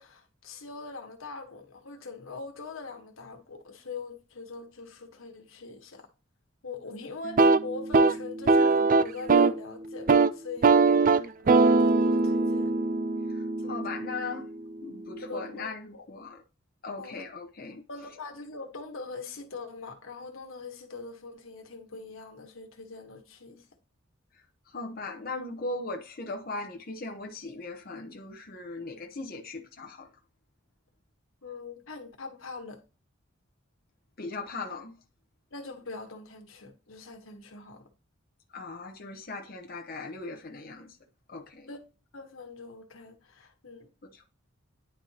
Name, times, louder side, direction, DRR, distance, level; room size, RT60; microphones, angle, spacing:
voice 1, 0.0-6.1 6.6-12.7 13.6-13.9 15.3-16.1 17.0-17.1 17.9-23.7 31.4-32.8 35.5-37.9 41.7-41.8 42.1-43.9, left 3 dB, 90° left, 1.4 m, -42 dB
sound 1, 7.2-9.6 9.9-10.3 10.6-14.5, right 3 dB, 40° right, 0.4 m, -22 dB
voice 2, 13.3-14.5 14.8-16.4 16.8-17.8 24.7-30.1 34.2-35.0 38.5-41.0 41.3-41.7 44.0-44.3, left 3 dB, 45° left, 0.8 m, -38 dB
10.0 x 4.4 x 2.8 m
head